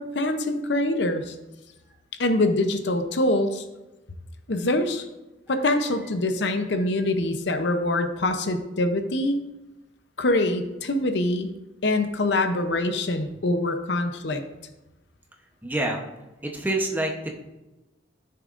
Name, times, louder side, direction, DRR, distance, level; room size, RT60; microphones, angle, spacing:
voice 1, 0.0-1.3 2.2-3.6 4.5-5.0 5.5-9.4 10.2-11.5 11.8-14.4, left 2 dB, 60° left, 7 dB, 0.7 m, -24 dB
voice 2, 15.6-16.0 16.4-17.3, right 1 dB, 10° right, 2 dB, 0.8 m, -27 dB
13.0 x 6.7 x 2.5 m, 1.0 s
head